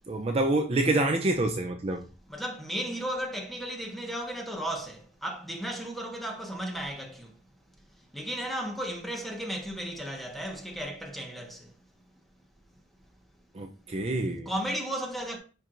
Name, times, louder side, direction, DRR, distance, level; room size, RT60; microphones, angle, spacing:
voice 1, 0.1-2.0 13.6-14.5, right 2 dB, 35° right, 0.5 m, -27 dB
voice 2, 2.2-7.4 7.8-11.8 14.4-15.4, equal, ahead, 1.3 m, -35 dB
10.0 x 4.7 x 2.5 m
head